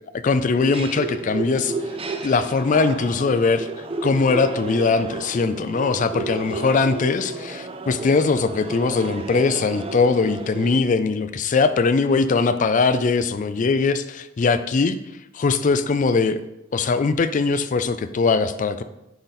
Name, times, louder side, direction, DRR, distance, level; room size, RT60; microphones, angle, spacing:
voice 1, 0.2-1.7 2.2-3.7 4.0-15.0 15.3-16.4 16.7-18.8, left 4 dB, 40° left, 12 dB, 0.4 m, -21 dB
sound 1, 0.6-10.8, right 3 dB, 30° right, 0.5 m, -32 dB
10.0 x 3.9 x 4.0 m, 0.90 s
head